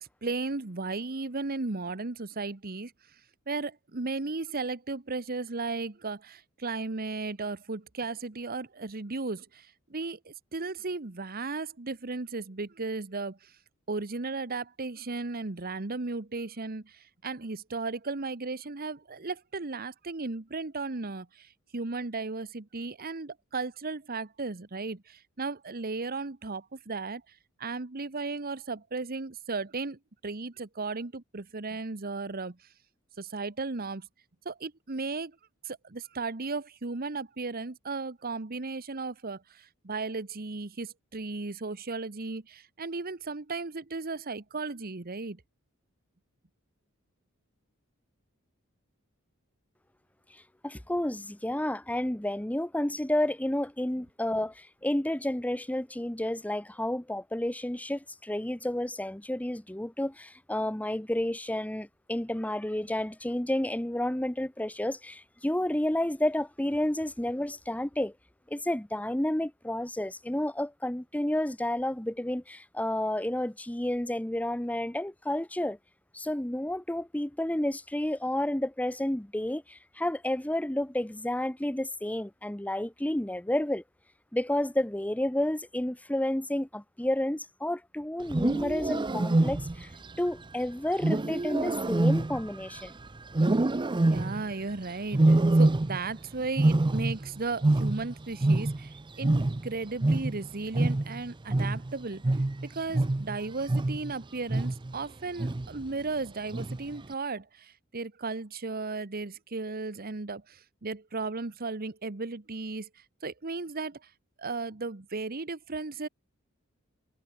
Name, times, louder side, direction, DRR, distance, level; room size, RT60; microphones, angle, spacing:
voice 1, 0.0-2.9 3.5-13.5 13.9-27.2 27.6-32.6 33.2-34.1 34.4-35.4 35.6-45.4 94.0-102.2 102.6-112.9 113.2-114.0 114.4-116.1, right 3 dB, 45° right, 1.2 m, -35 dB
voice 2, 50.6-68.1 68.5-75.8 76.1-83.8 84.3-89.9 90.2-92.9, left 1 dB, 5° left, 0.8 m, -31 dB
Wild animals, 88.2-89.9 91.0-92.9 93.3-94.5 95.1-96.2 96.4-99.0 99.2-104.1 104.5-104.9 105.4-105.8 106.5-107.0, right 2 dB, 20° right, 0.5 m, -26 dB
head